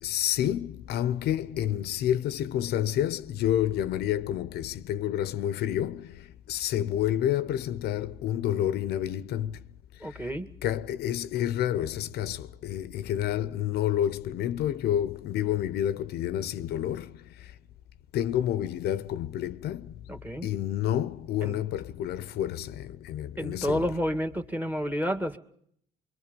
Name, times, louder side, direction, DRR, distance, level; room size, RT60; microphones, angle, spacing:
voice 1, 0.0-9.6 10.0-10.3 10.6-17.5 18.1-19.9 20.4-23.9, left 11 dB, 75° left, 0.8 m, -29 dB
voice 2, 10.0-10.5 20.1-20.5 21.4-21.6 23.4-25.4, equal, 10° right, 2.1 m, -30 dB
25.5 x 24.0 x 5.3 m
cardioid pair, 110°, 17 cm